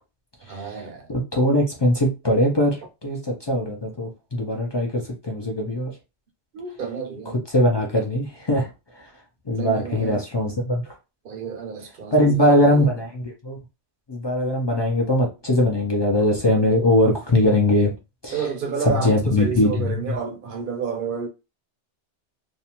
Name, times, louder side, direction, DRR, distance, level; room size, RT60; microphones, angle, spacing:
voice 1, 0.5-1.1 6.5-7.4 9.5-10.2 11.2-12.9 18.3-21.3, right 6 dB, 60° right, 0.6 m, -30 dB
voice 2, 1.1-5.9 7.5-8.7 9.5-10.8 12.1-13.6 14.1-17.9 18.2-18.4 18.8-20.1, left 1 dB, 45° left, 0.3 m, -21 dB
2.5 x 2.1 x 2.8 m
omnidirectional pair, 1.2 m